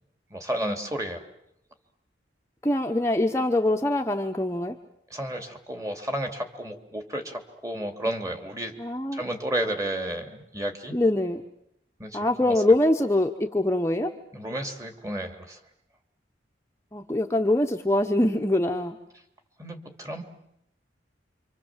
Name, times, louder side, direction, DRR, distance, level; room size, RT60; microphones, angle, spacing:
voice 1, 0.3-1.2 5.1-8.7 9.1-11.0 12.0-12.5 14.3-15.6 19.6-20.2, right 1 dB, 20° right, 5 dB, 2.7 m, -32 dB
voice 2, 2.6-4.7 8.8-9.2 10.9-11.4 12.1-14.1 16.9-19.0, left 1 dB, 15° left, 3 dB, 1.0 m, -23 dB
27.5 x 25.5 x 7.4 m, 0.77 s
head